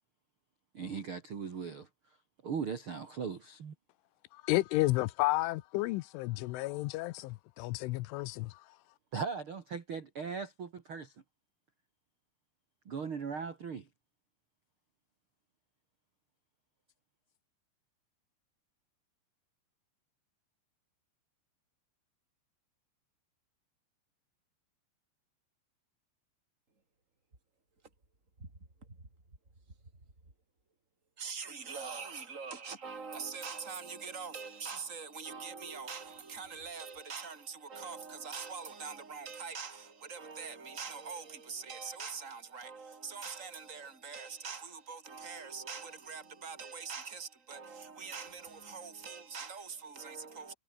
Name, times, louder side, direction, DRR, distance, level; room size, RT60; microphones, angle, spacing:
voice 1, 0.7-1.9 2.4-3.7 9.1-11.1 12.8-13.9, right 6 dB, 60° right, 1.4 m, -38 dB
voice 2, 4.3-8.6, left 19 dB, 85° left, 3.1 m, -32 dB
voice 3, 31.2-50.5, right 5 dB, 15° right, 5.8 m, -43 dB
omnidirectional pair, 5.9 m